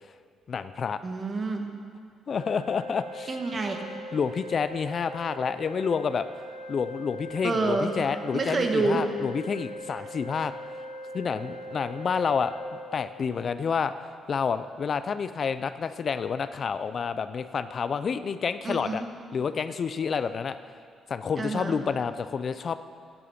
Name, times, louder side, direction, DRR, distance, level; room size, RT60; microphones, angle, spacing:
voice 1, 0.5-1.0 2.3-3.4 4.1-6.3 6.7-10.5 11.1-12.5 12.9-13.9 14.3-19.0 19.3-20.6 21.1-22.8, left 6 dB, 50° left, 12 dB, 0.4 m, -29 dB
voice 2, 1.0-1.7 3.3-3.8 7.4-8.0 8.3-9.0 18.6-19.0 21.4-21.8, right 3 dB, 40° right, 4 dB, 1.4 m, -28 dB
Organ, 2.3-13.3, equal, 75° left, 2.5 m, -41 dB
10.0 x 9.6 x 5.7 m, 2.2 s
cardioid pair, 90°, 0 cm